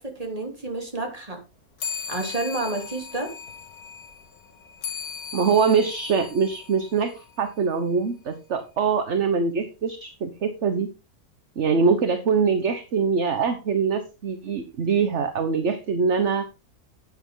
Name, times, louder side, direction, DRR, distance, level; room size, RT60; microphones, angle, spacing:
voice 1, 0.0-1.4 2.1-3.3, right 2 dB, 25° right, 3.3 m, -30 dB
sound 1, 1.8-7.6, left 6 dB, 85° left, 1.7 m, -38 dB
voice 2, 5.3-10.9 11.6-16.4, right 5 dB, 50° right, 1.4 m, -23 dB
12.5 x 9.0 x 3.8 m
omnidirectional pair, 1.6 m